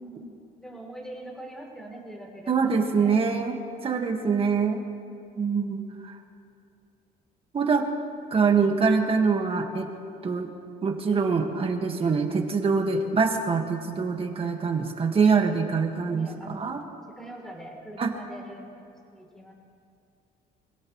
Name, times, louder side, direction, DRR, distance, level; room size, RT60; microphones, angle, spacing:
voice 1, 0.0-3.1 16.1-16.7 17.1-19.5, right 1 dB, 5° left, 0 dB, 3.3 m, -43 dB
voice 2, 2.5-4.8 5.4-6.2 7.5-7.9 8.3-9.9 10.2-10.5 10.8-16.8 18.0-18.1, right 5 dB, 35° right, 3 dB, 1.7 m, -24 dB
25.5 x 16.5 x 3.2 m, 2.6 s
cardioid pair, 110°, 17 cm